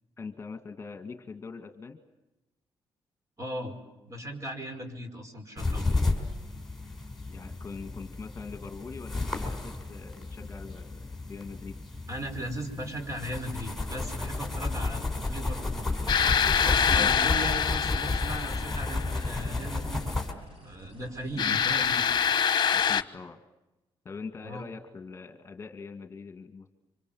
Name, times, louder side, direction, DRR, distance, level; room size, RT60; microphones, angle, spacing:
voice 1, 0.2-2.0 7.3-11.8 17.0-17.1 21.3-21.6 22.7-23.4 24.0-26.7, left 4 dB, 30° left, 6 dB, 2.2 m, -42 dB
voice 2, 3.4-3.7 4.1-6.1 12.1-15.9 16.6-20.1 20.6-22.1 24.4-24.6, equal, 35° right, 6 dB, 5.4 m, -38 dB
sound 1, 5.6-20.3, left 3 dB, ahead, 5.1 m, -32 dB
sound 2, 15.4-22.3, right 1 dB, 90° right, 6.2 m, -50 dB
sound 3, 16.1-19.3 21.4-23.0, left 7 dB, 50° left, 1.1 m, -25 dB
26.5 x 26.0 x 7.4 m, 0.99 s
cardioid pair, 100°, 9 cm